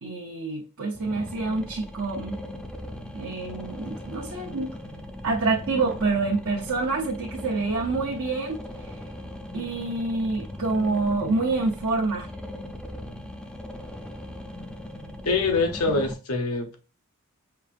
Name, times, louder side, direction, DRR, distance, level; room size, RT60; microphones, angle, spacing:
voice 1, 0.0-2.4 3.1-4.7 5.2-8.6 9.5-12.3, right 3 dB, 65° right, 0.8 m, -27 dB
sound 1, 0.9-16.1, left 1 dB, 5° left, 0.4 m, -38 dB
voice 2, 15.2-16.8, left 3 dB, 70° left, 0.8 m, -24 dB
5.6 x 2.5 x 2.5 m
head